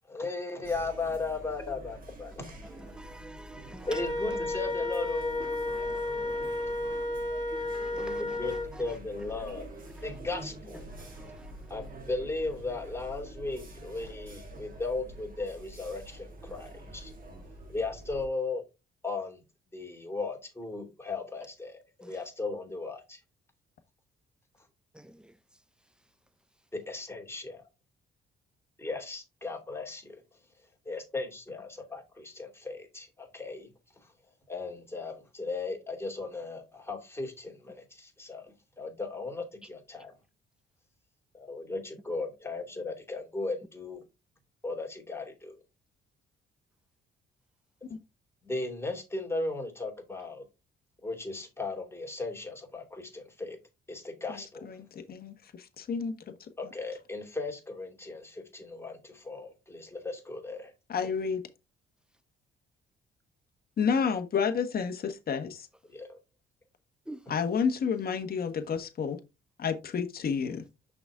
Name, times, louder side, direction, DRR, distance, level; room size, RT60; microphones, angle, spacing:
voice 1, 0.1-2.5 3.8-5.7 6.1-6.4 8.0-9.7 10.0-10.9 11.7-17.1 17.7-18.6 19.0-19.4 19.7-23.2 26.7-27.5 28.8-30.2 30.9-34.1 34.5-40.1 41.3-44.0 44.6-45.6 48.4-50.5 51.0-53.6 53.9-54.8 56.6-60.7 65.9-66.2, left 3 dB, 10° left, 2.5 m, -36 dB
sound 1, 0.6-18.3, right 1 dB, 45° right, 2.4 m, -46 dB
voice 2, 2.9-3.9 5.7-6.9 7.7-8.1 67.1-67.2, right 1 dB, 5° right, 0.6 m, -47 dB
Wind instrument woodwind instrument, 3.9-8.7, left 2 dB, 30° left, 2.5 m, -32 dB
voice 3, 54.3-56.1 60.9-61.4 63.8-65.7 67.3-69.2 69.6-70.6, left 6 dB, 50° left, 1.3 m, -30 dB
6.0 x 5.1 x 3.6 m
cardioid pair, 90°, 20 cm